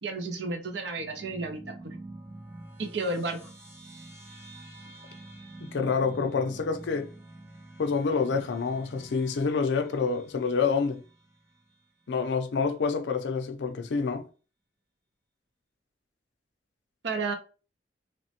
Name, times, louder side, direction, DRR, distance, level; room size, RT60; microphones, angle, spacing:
voice 1, 0.0-2.0 2.8-3.4 17.0-17.3, right 3 dB, 75° right, 0.6 m, -32 dB
sound 1, 1.0-11.7, right 2 dB, 10° right, 0.4 m, -47 dB
voice 2, 5.6-7.1 7.8-11.0 12.1-14.2, left 5 dB, 75° left, 0.4 m, -27 dB
3.0 x 2.1 x 2.7 m
head